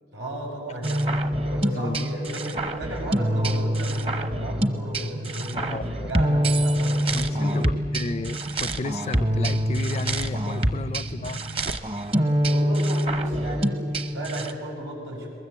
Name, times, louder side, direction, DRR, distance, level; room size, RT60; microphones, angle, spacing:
voice 1, 0.1-7.6 12.4-15.3, right 1 dB, 90° right, -1 dB, 7.1 m, -34 dB
sound 1, 0.8-14.5, right 1 dB, 30° right, 1.0 m, -25 dB
voice 2, 1.7-2.1 5.5-6.1 7.1-11.4, left 3 dB, 35° left, 16 dB, 0.5 m, -33 dB
sound 2, 1.7-11.7, right 4 dB, 55° right, 0.7 m, -41 dB
22.5 x 20.5 x 8.3 m, 2.6 s
head